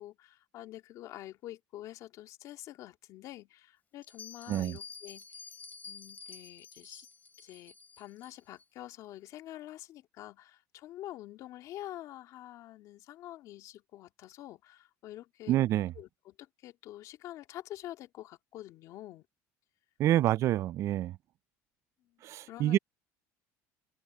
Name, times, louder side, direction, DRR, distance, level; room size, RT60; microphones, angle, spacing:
voice 1, 0.0-5.2 5.9-7.1 7.4-15.5 15.9-19.3 22.0-22.8, left 14 dB, 60° left, 2.3 m, -47 dB
Bell, 4.0-8.7, left 5 dB, 25° left, 3.0 m, -50 dB
voice 2, 15.5-15.9 20.0-21.2 22.2-22.8, right 13 dB, 50° right, 0.4 m, -27 dB
cardioid pair, 125°, 7 cm